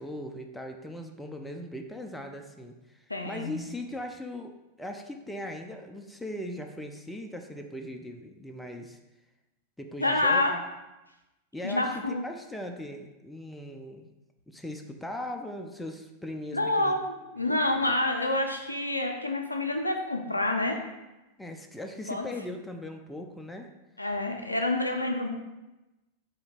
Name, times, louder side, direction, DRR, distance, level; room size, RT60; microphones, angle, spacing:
voice 1, 0.0-9.0 9.8-10.6 11.5-14.1 14.5-17.0 21.4-23.7, left 1 dB, 5° left, 4 dB, 0.3 m, -39 dB
voice 2, 3.1-3.6 10.0-10.5 11.6-12.2 16.5-20.8 22.1-22.3 24.0-25.3, left 2 dB, 85° left, 3 dB, 0.4 m, -27 dB
2.8 x 2.7 x 4.2 m, 1.0 s
figure-of-eight pair, 90°, 0 cm